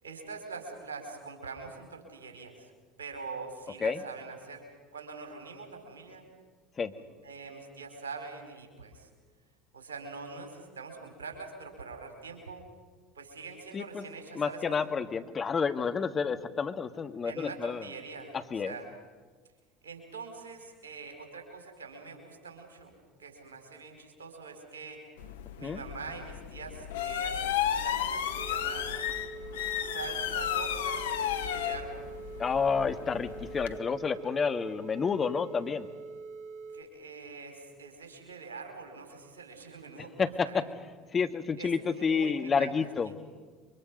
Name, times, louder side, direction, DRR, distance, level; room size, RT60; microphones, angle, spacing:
voice 1, 0.0-2.7 3.0-4.6 4.9-6.3 7.0-9.1 9.7-12.6 13.1-14.9 17.2-18.4 18.6-18.8 19.8-22.9 23.2-25.0 25.6-28.9 29.8-32.0 36.7-40.6 41.6-42.7 43.0-43.2, right 4 dB, 85° right, 4 dB, 4.6 m, -44 dB
voice 2, 14.3-17.9 18.5-18.7 25.6-25.8 32.4-35.9 40.0-40.7 41.1-43.1, left 5 dB, 30° left, 9 dB, 1.6 m, -30 dB
sound 1, 25.2-33.8, left 10 dB, 75° left, 1.1 m, -33 dB
sound 2, 28.4-36.8, right 4 dB, 50° right, 2.6 m, -44 dB
29.0 x 24.5 x 5.4 m, 1.4 s
hypercardioid pair, 70°, 0 cm